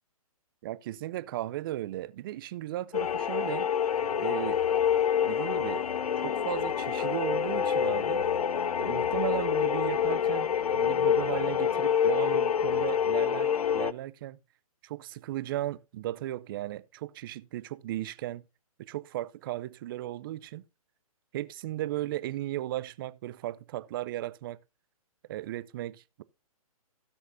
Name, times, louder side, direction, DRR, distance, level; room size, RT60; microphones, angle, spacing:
voice 1, 0.6-3.7 4.2-4.6 5.3-5.8 6.2-8.3 8.8-14.4 14.8-18.4 18.8-20.6 21.3-24.6 25.3-26.2, right 14 dB, 35° right, 0.5 m, -36 dB
sound 1, 2.9-13.9, left 8 dB, 80° left, 0.6 m, -27 dB
16.5 x 6.3 x 2.6 m
hypercardioid pair, 135°, 19 cm